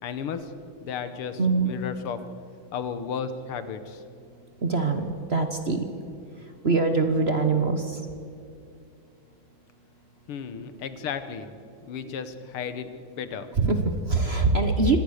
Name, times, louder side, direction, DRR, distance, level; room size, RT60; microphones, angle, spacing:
voice 1, 0.0-0.5 0.8-2.2 2.7-4.0 10.3-11.5 11.9-13.5, left 7 dB, 85° left, 11 dB, 2.1 m, -34 dB
voice 2, 1.4-1.7 4.6-5.9 6.6-8.0 13.6-15.0, right 3 dB, 35° right, 7 dB, 1.1 m, -23 dB
25.5 x 18.0 x 6.6 m, 2.5 s
omnidirectional pair, 2.3 m